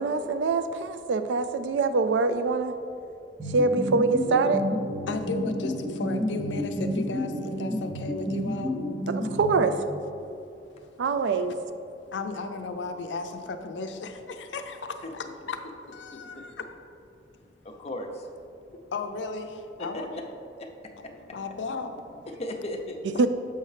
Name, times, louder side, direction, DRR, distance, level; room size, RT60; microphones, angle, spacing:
voice 1, 0.0-2.8 3.5-4.6 9.1-9.8 11.0-11.5 23.2-23.3, right 4 dB, 75° right, 10 dB, 0.4 m, -24 dB
sound 1, 3.4-10.1, equal, 15° right, 0.8 m, -31 dB
voice 2, 5.1-8.7 11.5-11.6 11.9-15.6 15.9-16.6 18.5-20.2 21.1-22.3, left 3 dB, 80° left, 7 dB, 0.5 m, -35 dB
voice 3, 16.1-16.5 17.6-18.3 19.8-20.0 20.6-20.7 21.0-21.4 22.3-23.0, left 1 dB, 35° left, 2 dB, 0.6 m, -37 dB
7.0 x 5.5 x 3.3 m, 2.8 s
head